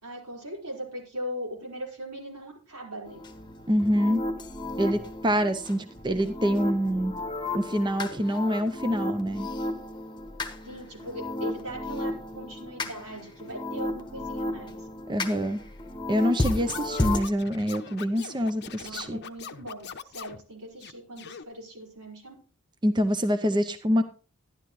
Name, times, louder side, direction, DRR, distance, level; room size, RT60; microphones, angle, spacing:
voice 1, 0.0-3.2 10.6-14.8 18.8-22.3, equal, 85° right, -1 dB, 4.5 m, -39 dB
sound 1, 3.1-17.2, left 1 dB, 20° left, 1.1 m, -33 dB
voice 2, 3.7-4.2 4.8-7.1 7.5-9.5 15.1-15.6 16.1-19.2 22.8-24.0, equal, 20° right, 9 dB, 0.6 m, -26 dB
Scratching (performance technique), 16.4-20.4 20.8-21.4, left 6 dB, 50° left, 0.7 m, -42 dB
12.0 x 11.0 x 3.1 m, 0.37 s
head